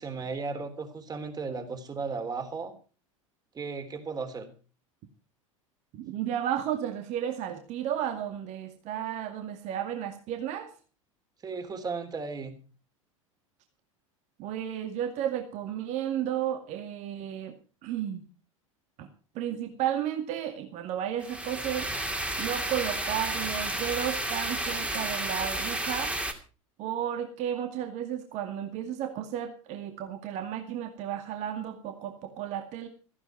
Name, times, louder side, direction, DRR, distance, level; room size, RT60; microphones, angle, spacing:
voice 1, 0.0-2.7 3.5-4.5 11.4-12.6, right 4 dB, 20° right, 7 dB, 3.5 m, -35 dB
voice 2, 5.9-10.7 14.4-17.5 17.8-18.2 19.0-19.1 19.3-21.9 22.4-26.1 26.8-32.9, right 10 dB, 40° right, 5 dB, 2.2 m, -33 dB
sound 1, 21.2-26.3, right 1 dB, 5° right, 2.6 m, -32 dB
16.5 x 15.0 x 4.6 m, 0.37 s
figure-of-eight pair, 80°, 17 cm